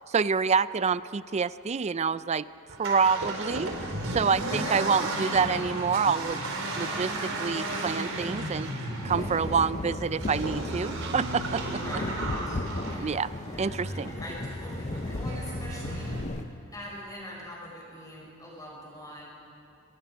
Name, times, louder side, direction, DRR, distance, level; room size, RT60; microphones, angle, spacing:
voice 1, 0.1-2.5 2.8-3.7 4.1-6.4 6.7-8.7 9.0-11.6 13.0-13.3 13.6-14.1, right 5 dB, 30° right, 16 dB, 0.4 m, -27 dB
Accelerating revving vroom, 2.7-16.2, right 1 dB, 85° right, 3.8 m, -34 dB
voice 2, 4.5-4.9 9.2-9.3 11.6-13.1 13.5-16.1 16.7-19.2, equal, 20° left, -4 dB, 6.7 m, -43 dB
sound 1, 9.1-16.4, left 2 dB, 35° left, 0.7 m, -36 dB
sound 2, 11.0-12.7, right 3 dB, 55° right, 0.9 m, -43 dB
25.5 x 19.0 x 6.2 m, 2.6 s
head